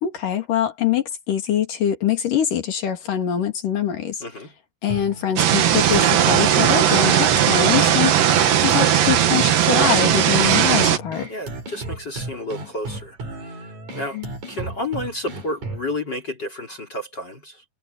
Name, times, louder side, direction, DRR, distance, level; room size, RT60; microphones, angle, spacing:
voice 1, 0.0-4.2 4.8-8.1 8.6-11.3 14.1-14.3, left 9 dB, 60° left, 3.8 m, -24 dB
voice 2, 4.2-4.5 7.6-8.0 11.3-14.2 14.5-17.6, left 1 dB, 30° left, 3.5 m, -31 dB
sound 1, 4.9-15.9, right 2 dB, 50° right, 6.0 m, -34 dB
sound 2, 5.4-11.0, right 10 dB, 65° right, 3.2 m, -17 dB
omnidirectional pair, 4.5 m